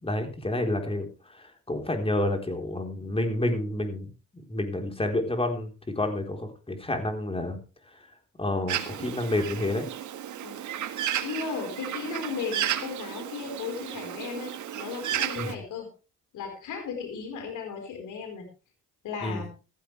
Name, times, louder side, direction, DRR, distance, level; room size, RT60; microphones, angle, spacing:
voice 1, 0.0-4.1 4.3-5.7 6.0-7.6 8.4-9.9 15.3-15.5 19.2-19.4, left 1 dB, 20° left, 4 dB, 4.2 m, -29 dB
Bird, 8.7-15.6, right 11 dB, 75° right, 1.7 m, -33 dB
voice 2, 11.2-15.9 16.3-18.4 19.0-19.5, left 6 dB, 85° left, 3 dB, 4.8 m, -36 dB
15.0 x 14.5 x 3.4 m, 0.33 s
cardioid pair, 90°, 30 cm